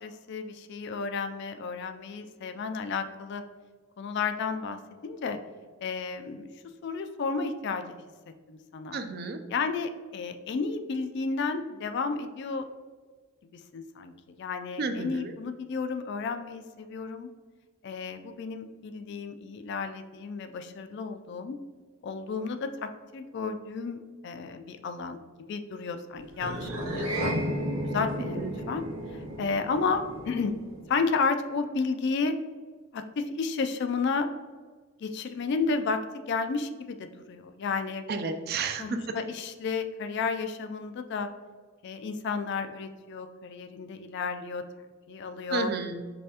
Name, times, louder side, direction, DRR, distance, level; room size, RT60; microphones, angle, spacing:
voice 1, 0.0-3.4 4.0-5.4 5.8-6.5 6.8-8.0 8.5-9.0 9.5-12.7 13.5-14.1 14.4-17.3 17.8-21.6 22.0-27.4 27.8-28.8 29.1-30.5 30.9-32.4 32.9-34.3 35.0-38.0 38.8-41.3 41.8-44.6 45.1-45.7, left 4 dB, 50° left, 8 dB, 0.3 m, -32 dB
voice 2, 8.9-9.4 14.8-15.3 28.4-28.5 38.1-38.8 45.5-46.0, right 4 dB, 45° right, 8 dB, 0.4 m, -31 dB
sound 1, 26.4-30.9, right 1 dB, 85° right, 1.0 m, -33 dB
5.4 x 3.3 x 2.8 m, 1.4 s
head